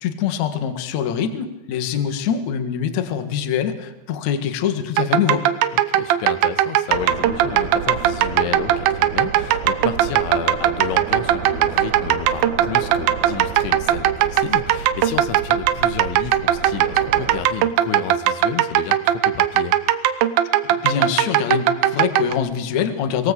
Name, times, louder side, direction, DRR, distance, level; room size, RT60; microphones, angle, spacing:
voice 1, 0.0-5.4 20.6-23.3, left 8 dB, 55° left, 8 dB, 2.3 m, -24 dB
sound 1, 5.0-22.3, right 12 dB, 75° right, 2.2 m, -19 dB
voice 2, 5.9-19.8, left 9 dB, 90° left, 11 dB, 3.6 m, -31 dB
sound 2, 6.9-17.4, right 6 dB, 55° right, 2.2 m, -32 dB
24.5 x 18.0 x 8.2 m, 1.0 s
omnidirectional pair, 5.3 m